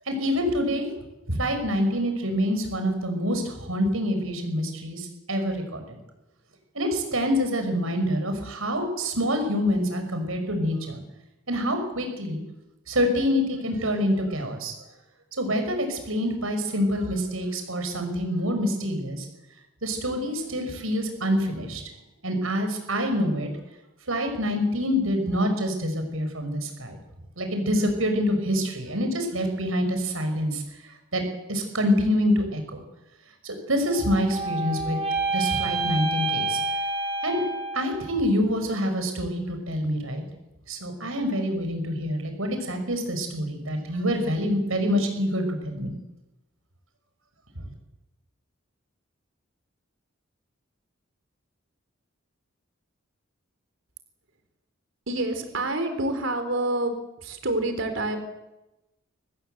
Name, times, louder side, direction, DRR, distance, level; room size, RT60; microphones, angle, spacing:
voice 1, 0.1-0.9 1.3-6.0 6.7-11.0 11.5-12.4 12.9-14.7 15.4-19.3 19.8-21.8 22.2-23.5 24.1-27.0 27.4-31.2 31.5-32.8 33.4-35.0 35.3-36.6 37.2-37.4 37.7-40.2 40.7-45.9 47.5-47.6, equal, 80° right, 6 dB, 6.3 m, -26 dB
sound 1, 33.9-38.2, right 3 dB, 30° right, 4.2 m, -28 dB
voice 2, 55.1-56.9 57.2-58.2, right 2 dB, 65° right, 7 dB, 3.9 m, -27 dB
25.0 x 19.5 x 8.1 m, 0.98 s
head